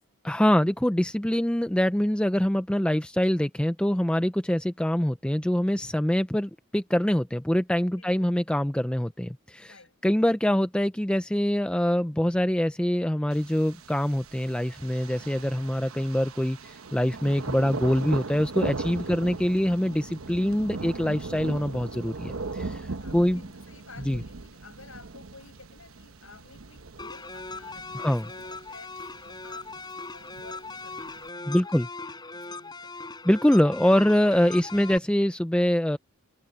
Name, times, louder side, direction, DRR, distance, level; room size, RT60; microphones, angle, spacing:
voice 1, 0.2-9.7 10.0-22.6 23.1-23.5 24.0-24.2 27.9-28.3 31.5-31.9 33.2-36.0, equal, 5° left, 0.4 m, -24 dB
voice 2, 7.9-8.4 9.6-10.0 19.0-19.5 22.3-31.7 32.3-32.9, left 3 dB, 75° left, 7.4 m, -52 dB
Thunder, 13.3-31.3, right 3 dB, 80° right, 1.0 m, -39 dB
sound 1, 27.0-35.0, left 3 dB, 20° left, 4.6 m, -40 dB
head